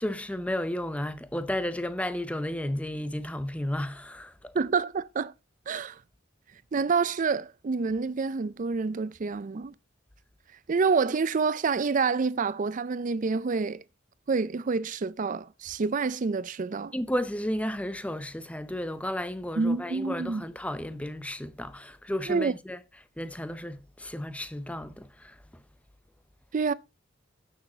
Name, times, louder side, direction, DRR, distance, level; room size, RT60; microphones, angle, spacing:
voice 1, 0.0-4.5 16.9-22.8 23.2-25.4, left 1 dB, 5° left, 0.6 m, -33 dB
voice 2, 4.5-5.3 5.7-6.0 6.7-9.7 10.7-13.8 14.3-16.9 19.6-20.4 22.3-22.5 26.5-26.7, right 4 dB, 40° right, 0.4 m, -27 dB
15.5 x 6.4 x 2.8 m
head